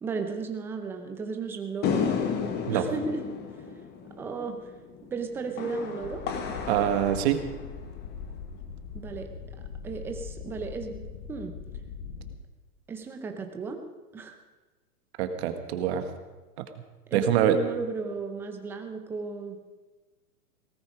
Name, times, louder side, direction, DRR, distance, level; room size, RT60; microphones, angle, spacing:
voice 1, 0.0-2.1 2.7-3.2 4.2-4.6 5.1-6.2 8.9-9.3 9.8-11.0 11.3-11.5 12.9-13.8 14.1-14.4 17.1-19.6, right 4 dB, 5° right, 5 dB, 0.5 m, -34 dB
sound 1, 1.8-8.3, left 6 dB, 20° left, 1.2 m, -33 dB
sound 2, 6.0-12.4, left 6 dB, 40° left, 1.4 m, -41 dB
voice 2, 6.7-7.4 15.2-16.1 17.1-17.6, right 10 dB, 40° right, 8 dB, 1.5 m, -24 dB
17.5 x 14.0 x 5.0 m, 1.2 s
hypercardioid pair, 140°, 47 cm